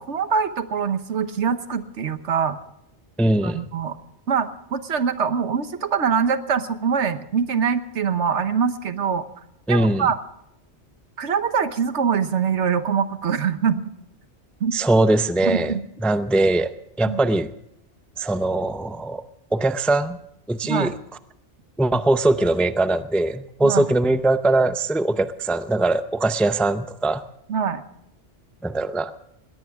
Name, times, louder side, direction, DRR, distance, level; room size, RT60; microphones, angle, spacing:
voice 1, 0.0-2.6 3.4-4.0 4.3-9.3 9.7-10.2 11.2-13.8 14.6-14.7 15.4-15.8 17.1-17.2 20.7-20.9 23.6-23.9 27.5-27.8, right 6 dB, 80° right, 10 dB, 1.4 m, -23 dB
voice 2, 3.2-3.7 9.7-10.1 14.7-15.8 16.0-16.7 17.0-17.5 18.2-19.2 19.5-20.2 20.5-20.9 21.8-27.2 28.6-29.1, right 2 dB, ahead, 11 dB, 0.4 m, -21 dB
21.0 x 18.0 x 3.6 m, 0.78 s
omnidirectional pair, 1.2 m